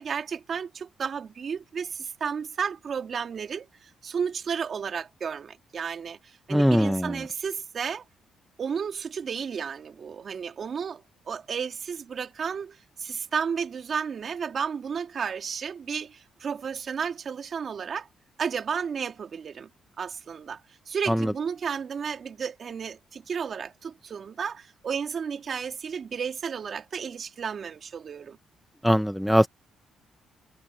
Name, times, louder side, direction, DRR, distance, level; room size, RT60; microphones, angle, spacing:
voice 1, 0.0-8.0 8.6-18.1 18.4-19.7 20.0-28.4, right 6 dB, 50° right, 2.7 m, -33 dB
voice 2, 6.5-7.2 21.1-21.3 28.8-29.5, equal, ahead, 0.9 m, -21 dB
cardioid pair, 90°, 0 cm